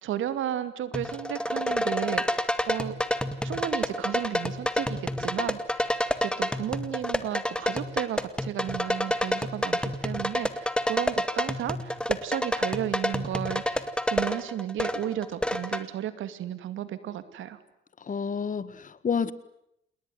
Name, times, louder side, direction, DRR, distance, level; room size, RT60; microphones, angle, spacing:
voice 1, 0.0-2.9 3.4-6.0 6.2-17.6, right 11 dB, 80° right, 2.5 m, -33 dB
sound 1, 0.9-15.8, left 1 dB, 5° left, 2.2 m, -29 dB
voice 2, 18.0-19.3, left 6 dB, 40° left, 1.8 m, -29 dB
28.5 x 21.0 x 9.4 m
cardioid pair, 90°, 20 cm